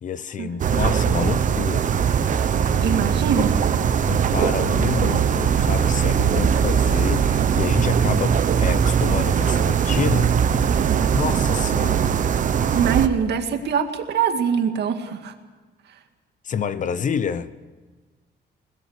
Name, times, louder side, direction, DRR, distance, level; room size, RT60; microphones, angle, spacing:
voice 1, 0.0-3.0 4.0-10.3 11.1-12.0 16.4-17.5, left 7 dB, 45° left, 0.9 m, -29 dB
sound 1, 0.6-13.1, right 7 dB, 45° right, 1.1 m, -20 dB
voice 2, 2.8-3.6 12.7-15.3, right 7 dB, 65° right, 2.2 m, -23 dB
22.5 x 20.0 x 6.6 m
cardioid pair, 160°, 18 cm